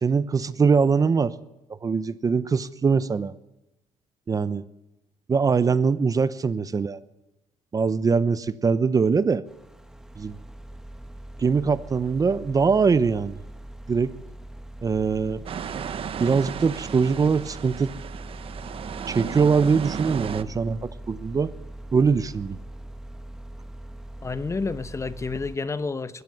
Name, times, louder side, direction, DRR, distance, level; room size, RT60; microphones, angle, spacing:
voice 1, 0.0-1.3 1.8-3.3 4.3-4.6 5.3-7.0 7.7-9.4 10.2-10.4 11.4-13.3 13.9-14.1 14.8-15.4 16.2-17.9 19.1-21.5 21.9-22.6, right 5 dB, 30° right, 16 dB, 0.9 m, -22 dB
sound 1, 9.5-25.6, right 1 dB, 5° right, 1.4 m, -41 dB
sound 2, 15.5-20.4, right 8 dB, 50° right, 1.3 m, -34 dB
voice 2, 24.2-26.2, left 4 dB, 25° left, 14 dB, 1.1 m, -30 dB
21.5 x 17.0 x 9.5 m, 0.96 s
cardioid pair, 105°, 12 cm